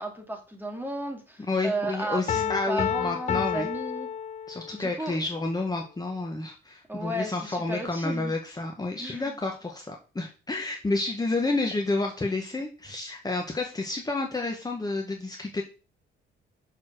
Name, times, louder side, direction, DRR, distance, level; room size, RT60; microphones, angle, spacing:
voice 1, 0.0-4.1 4.7-5.2 6.9-8.3 9.0-9.4, right 1 dB, 10° right, 3 dB, 2.1 m, -34 dB
voice 2, 1.5-3.7 4.5-15.6, left 2 dB, 20° left, 1 dB, 1.4 m, -30 dB
Piano, 2.3-4.9, left 8 dB, 35° left, 0.5 m, -30 dB
6.6 x 4.4 x 6.1 m, 0.34 s
cardioid pair, 90°, 20 cm